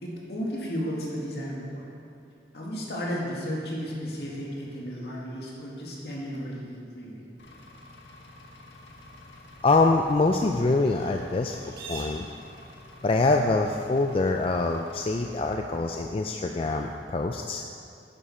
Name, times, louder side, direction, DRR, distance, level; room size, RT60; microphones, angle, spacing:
voice 1, 0.0-1.9 2.5-7.2, equal, 70° left, -3 dB, 2.2 m, -34 dB
Engine, 7.4-15.5, left 2 dB, 90° left, 1.4 m, -49 dB
sound 1, 8.7-17.0, right 3 dB, 60° right, 1.5 m, -50 dB
voice 2, 9.6-11.6 11.9-12.3 13.0-17.6, left 3 dB, 30° left, 3 dB, 0.4 m, -24 dB
10.5 x 9.5 x 4.3 m, 2.4 s
head